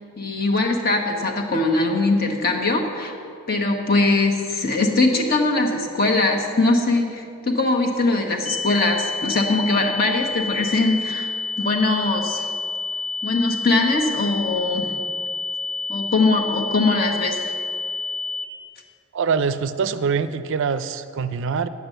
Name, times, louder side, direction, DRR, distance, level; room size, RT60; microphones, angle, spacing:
voice 1, 0.2-3.1 3.5-11.3 11.6-12.5 13.2-15.0 15.9-17.5, left 2 dB, 45° left, 2 dB, 1.3 m, -21 dB
sound 1, 8.4-18.4, left 4 dB, 70° left, 1.4 m, -29 dB
voice 2, 19.1-21.7, right 5 dB, 55° right, 12 dB, 0.4 m, -24 dB
9.6 x 7.9 x 7.8 m, 2.4 s
head